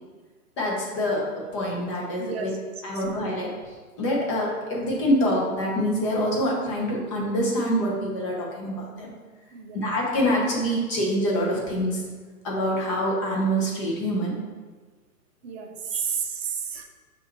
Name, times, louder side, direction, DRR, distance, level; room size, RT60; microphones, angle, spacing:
voice 1, 0.6-1.2 1.5-2.5 2.8-3.5 4.0-9.1 9.7-12.0 12.4-14.3, equal, 20° left, -3 dB, 0.6 m, -25 dB
voice 2, 2.2-3.0 9.5-9.9 15.4-16.8, right 6 dB, 45° right, 3 dB, 0.6 m, -32 dB
5.5 x 2.5 x 3.0 m, 1.4 s
hypercardioid pair, 135°, 45 cm